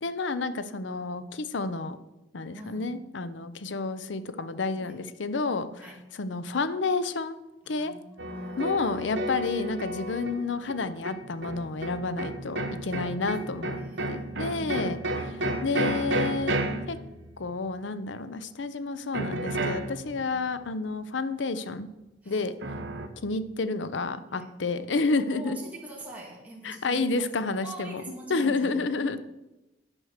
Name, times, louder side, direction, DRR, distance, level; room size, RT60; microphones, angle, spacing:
voice 1, 0.0-2.0 2.3-7.4 7.7-7.9 8.6-13.8 14.1-15.0 15.3-16.6 16.9-17.0 17.4-21.9 22.3-22.5 23.2-25.6 26.6-28.0 28.3-29.2, left 3 dB, 80° left, 13 dB, 0.7 m, -30 dB
voice 2, 2.5-2.9 4.7-5.0 5.7-6.0 7.6-8.8 12.8-13.2 13.6-14.3 14.6-14.9 20.2-20.4 22.2-22.5 24.3-24.5 25.2-28.8, right 1 dB, 10° right, -3 dB, 1.8 m, -44 dB
sound 1, 8.2-17.7 19.1-20.4 22.6-23.1, right 1 dB, 75° right, 1.0 m, -32 dB
9.8 x 6.3 x 6.5 m, 0.97 s
head